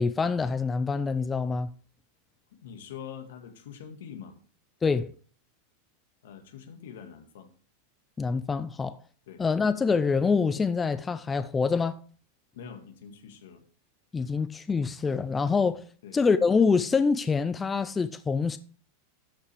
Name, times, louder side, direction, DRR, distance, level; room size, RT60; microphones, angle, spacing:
voice 1, 0.0-1.7 4.8-5.1 8.2-9.0 9.4-12.0 14.1-15.9 16.1-18.6, left 5 dB, 15° left, 0.4 m, -25 dB
voice 2, 2.6-4.4 6.2-7.5 9.3-9.4 12.5-13.6 16.0-16.2, left 7 dB, 80° left, 1.8 m, -44 dB
12.5 x 5.6 x 3.4 m
supercardioid pair, 140°, 0 cm